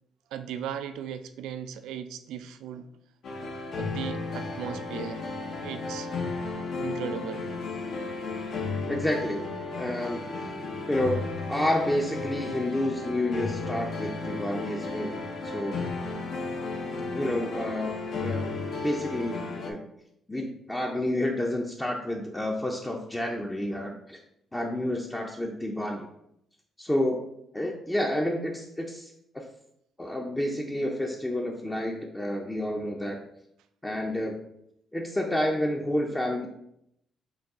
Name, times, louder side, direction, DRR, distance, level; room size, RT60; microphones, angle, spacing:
voice 1, 0.3-2.9 3.8-5.4 5.6-6.1 6.8-7.5, right 9 dB, 90° right, 10 dB, 0.3 m, -37 dB
sound 1, 3.2-19.7, left 3 dB, 65° left, 0.7 m, -34 dB
voice 2, 8.9-10.3 10.9-11.2 11.5-15.2 15.4-15.9 17.1-17.9 18.2-18.5 18.8-19.8 20.3-24.2 24.5-26.1 26.8-27.2 27.5-29.4 30.0-33.2 33.8-34.4 34.9-36.5, left 1 dB, 15° left, 0 dB, 0.5 m, -29 dB
5.3 x 2.3 x 3.6 m, 0.77 s
cardioid pair, 90°, 0 cm